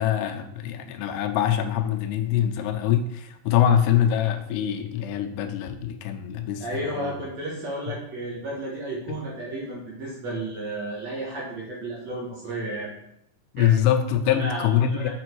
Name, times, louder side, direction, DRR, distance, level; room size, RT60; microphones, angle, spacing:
voice 1, 0.0-7.2 9.1-9.3 13.5-15.1, left 10 dB, 90° left, 6 dB, 2.8 m, -24 dB
voice 2, 6.6-12.9 13.6-13.9 14.3-15.1, right 1 dB, 50° right, -4 dB, 2.3 m, -33 dB
6.7 x 6.2 x 4.6 m, 0.77 s
omnidirectional pair, 4.7 m